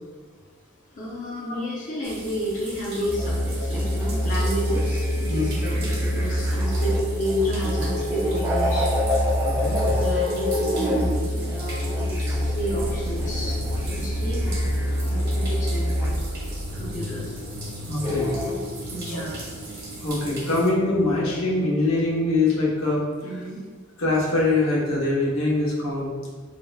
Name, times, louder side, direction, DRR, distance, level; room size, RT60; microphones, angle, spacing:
voice 1, 0.9-8.9 9.9-14.6 15.1-16.1 16.7-17.3 18.9-19.3 23.2-23.6, equal, 40° left, -6 dB, 0.7 m, -31 dB
sound 1, 2.0-20.7, right 2 dB, 50° right, 1.3 m, -40 dB
sound 2, 3.1-16.2 18.0-18.6, equal, 15° right, 0.5 m, -25 dB
voice 2, 9.4-9.8 17.9-18.3 19.1-19.2 20.0-23.0 23.3-23.4 24.0-26.2, left 2 dB, 75° left, -5 dB, 1.0 m, -23 dB
sound 3, 12.3-22.7, equal, 70° right, 0.5 m, -37 dB
5.2 x 2.8 x 2.3 m, 1.5 s
head